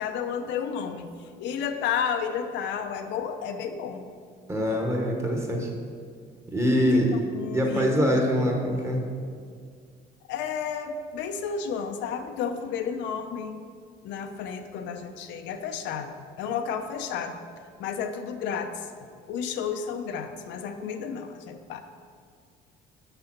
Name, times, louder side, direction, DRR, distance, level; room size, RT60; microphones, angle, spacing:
voice 1, 0.0-4.0 6.9-7.0 7.3-8.2 8.7-8.9 10.3-13.6 14.0-17.4 17.8-21.8, left 7 dB, 80° left, 6 dB, 0.7 m, -32 dB
voice 2, 4.5-5.7 6.5-7.2 7.5-9.0, equal, 15° right, 1 dB, 1.2 m, -24 dB
6.8 x 6.7 x 5.9 m, 2.1 s
cardioid pair, 145°, 18 cm